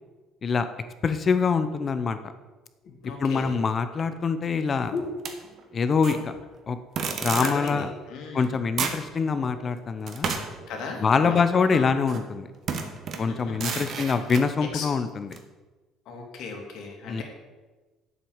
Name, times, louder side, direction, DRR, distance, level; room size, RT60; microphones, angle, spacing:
voice 1, 1.0-2.2 3.2-4.9 5.7-6.3 6.7-6.8 7.2-7.9 8.3-10.3 11.0-12.5 13.2-15.4 17.1-17.2, left 5 dB, 30° left, 10 dB, 0.8 m, -24 dB
sound 1, 2.8-5.9 6.2-6.7 7.1-7.2 7.5-8.2 8.8-9.6 10.2-10.4, left 3 dB, 50° left, 2.5 m, -40 dB
voice 2, 3.0-3.6 7.4-8.6 10.7-11.4 11.7-11.9 13.3-13.9 14.7-14.8 16.1-17.2, left 4 dB, 65° left, 1 dB, 2.9 m, -36 dB
sound 2, 5.3-6.2 7.0-7.7 8.4-8.5 8.8-9.1 10.1-11.5 12.1-12.3 12.7-14.5 15.3-15.4, right 5 dB, 45° right, 1.4 m, -32 dB
9.2 x 8.1 x 7.2 m, 1.2 s
cardioid pair, 145°, 0 cm